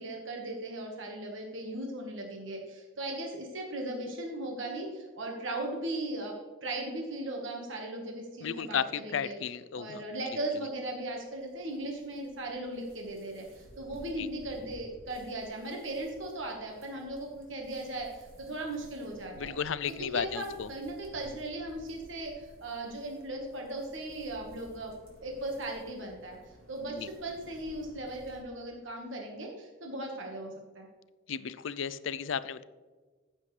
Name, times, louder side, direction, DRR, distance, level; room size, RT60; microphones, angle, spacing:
voice 1, 0.0-6.3 6.6-9.4 9.7-19.5 19.9-24.9 25.2-30.9, right 1 dB, 70° right, 1 dB, 1.5 m, -38 dB
voice 2, 8.4-10.0 14.2-14.3 19.4-20.7 26.9-27.1 31.3-32.6, left 7 dB, 70° left, 16 dB, 0.4 m, -34 dB
sound 1, 10.7-28.4, equal, 45° right, 3.3 m, -56 dB
14.5 x 7.4 x 3.3 m, 1.4 s
head